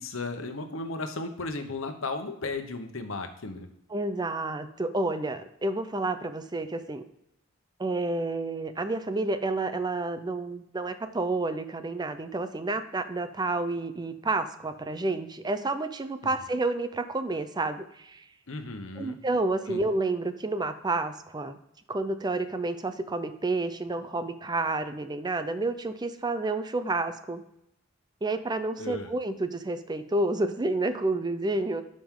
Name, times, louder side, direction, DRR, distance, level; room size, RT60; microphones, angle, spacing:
voice 1, 0.0-3.7 18.5-19.2 19.7-19.8 28.8-29.1, left 3 dB, 75° left, 7 dB, 1.1 m, -35 dB
voice 2, 3.9-7.0 7.8-18.2 19.0-21.6 21.9-27.4 28.2-31.8, right 2 dB, 20° right, 10 dB, 0.5 m, -30 dB
12.0 x 5.3 x 3.7 m, 0.78 s
head